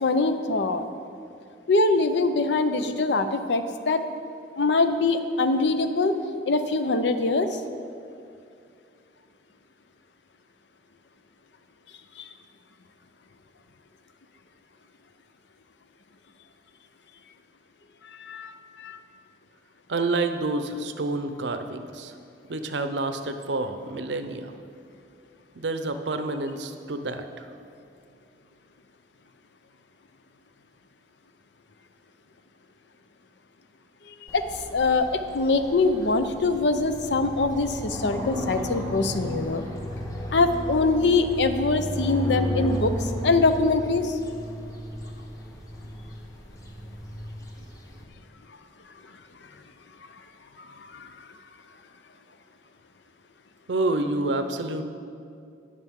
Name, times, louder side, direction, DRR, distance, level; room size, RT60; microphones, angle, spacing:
voice 1, 0.0-0.8 1.7-4.0 4.6-6.1 6.5-7.6 12.2-12.3 18.2-18.5 18.8-19.0 34.3-34.4 34.7-35.1 35.3-39.6 40.3-44.2 50.8-51.1, left 3 dB, 70° left, 9 dB, 0.6 m, -23 dB
voice 2, 19.9-22.1 22.5-24.5 25.5-27.5 53.7-54.8, right 2 dB, 75° right, 8 dB, 0.7 m, -28 dB
sound 1, 34.3-48.0, equal, 20° left, 1.1 m, -34 dB
18.5 x 6.7 x 3.6 m, 2.5 s
head